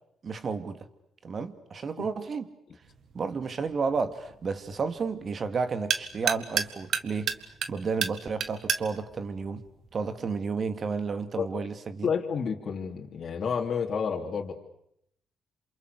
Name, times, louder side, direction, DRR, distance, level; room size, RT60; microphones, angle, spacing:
voice 1, 0.2-0.8 1.2-2.5 3.1-7.3 7.7-9.6 9.9-12.1, right 5 dB, 50° right, 10 dB, 2.5 m, -32 dB
sound 1, 2.8-10.4, right 7 dB, 65° right, 1.7 m, -34 dB
voice 2, 12.0-14.5, left 6 dB, 55° left, 0 dB, 3.1 m, -30 dB
28.0 x 27.5 x 6.8 m, 0.73 s
cardioid pair, 75°, 0 cm